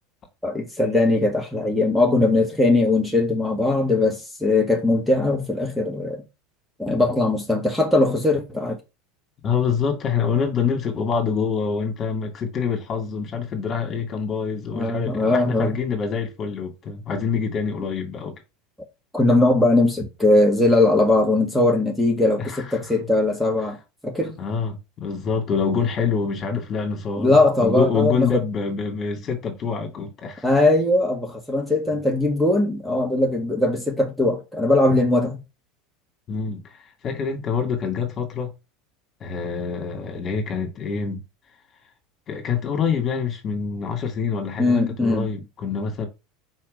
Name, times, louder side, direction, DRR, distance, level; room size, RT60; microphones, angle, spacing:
voice 1, 0.4-6.2 6.8-8.8 14.7-15.7 19.1-24.4 27.2-28.4 30.4-35.4 44.6-45.3, left 2 dB, ahead, 1.6 m, -20 dB
voice 2, 9.4-18.3 22.4-22.9 24.4-30.4 36.3-38.5 39.2-41.2 42.3-46.1, left 6 dB, 40° left, 2.4 m, -26 dB
4.7 x 4.2 x 5.4 m
hypercardioid pair, 85°, 0 cm